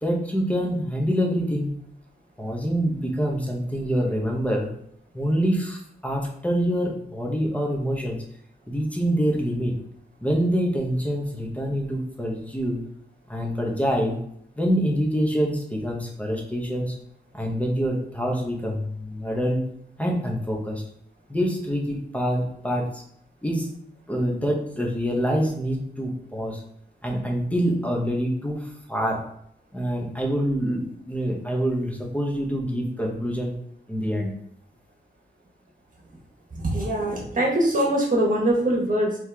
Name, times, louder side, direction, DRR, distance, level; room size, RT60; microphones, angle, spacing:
voice 1, 0.0-1.7 2.4-4.7 5.1-8.2 8.7-9.7 10.2-12.8 13.3-14.2 14.6-17.0 17.3-19.6 20.0-20.8 21.3-23.0 23.4-23.7 24.1-26.6 27.0-29.2 29.7-33.5 33.9-34.3, equal, 5° left, 0 dB, 1.0 m, -26 dB
voice 2, 36.5-39.2, right 1 dB, 45° right, -2 dB, 1.4 m, -23 dB
4.2 x 3.0 x 3.5 m, 0.70 s
wide cardioid pair, 100°, 19 cm